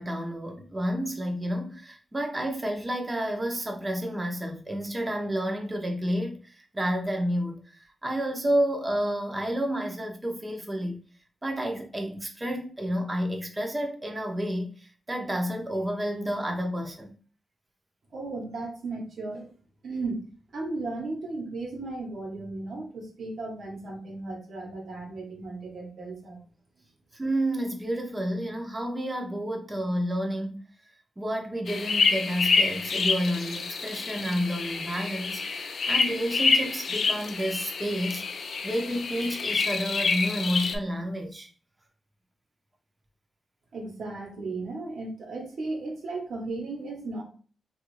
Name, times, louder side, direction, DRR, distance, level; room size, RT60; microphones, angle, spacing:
voice 1, 0.0-11.0 11.4-17.1 27.1-30.7 31.2-41.5, equal, 20° right, 0.7 m, -30 dB
voice 2, 18.1-19.4 19.8-20.2 20.5-26.4 43.7-47.2, right 3 dB, 70° right, 1.0 m, -35 dB
sound 1, 31.7-40.8, left 4 dB, 65° left, 0.4 m, -27 dB
3.1 x 2.4 x 3.1 m
cardioid pair, 100°, 0 cm